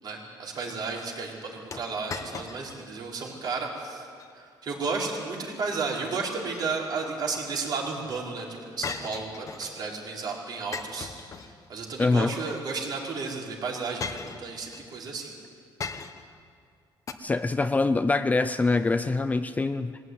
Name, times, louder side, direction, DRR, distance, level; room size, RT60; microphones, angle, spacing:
voice 1, 0.0-4.0 4.3-15.3, right 4 dB, 50° right, -2 dB, 4.8 m, -33 dB
sound 1, 1.7-2.9 3.3-3.4 4.0-4.3 6.2-7.1 8.8-9.8 10.7-11.9 13.0-13.2 14.0-14.9 15.8-16.4 17.1-17.2, left 5 dB, 35° left, 1.2 m, -38 dB
voice 2, 12.0-12.3 17.2-20.0, left 3 dB, 15° left, 11 dB, 0.5 m, -24 dB
22.0 x 17.0 x 9.6 m, 2.3 s
cardioid pair, 150°, 9 cm